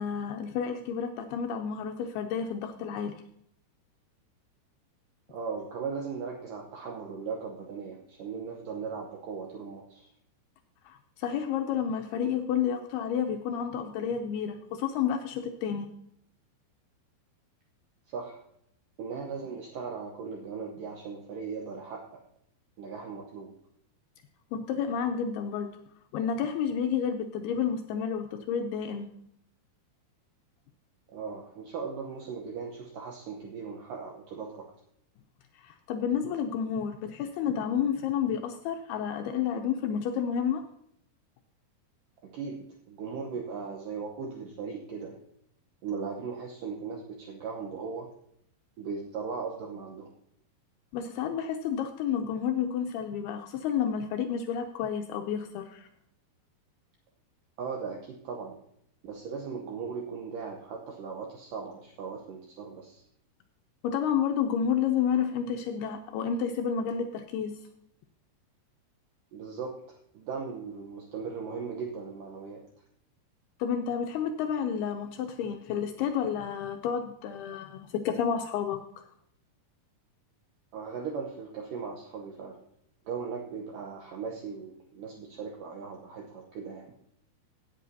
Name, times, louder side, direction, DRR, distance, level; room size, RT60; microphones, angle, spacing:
voice 1, 0.0-3.2 10.9-15.9 24.5-25.7 26.1-29.1 35.6-40.6 50.9-55.9 63.8-67.6 73.6-78.8, left 7 dB, 80° left, 5 dB, 2.3 m, -30 dB
voice 2, 5.3-10.1 18.1-18.4 19.0-22.0 22.8-23.5 31.1-34.7 42.2-45.2 45.8-48.1 48.8-50.1 57.6-58.6 59.0-63.0 69.3-72.6 80.7-82.6 83.1-87.0, right 5 dB, 85° right, 1 dB, 1.9 m, -38 dB
17.0 x 8.1 x 2.7 m, 0.72 s
omnidirectional pair, 5.1 m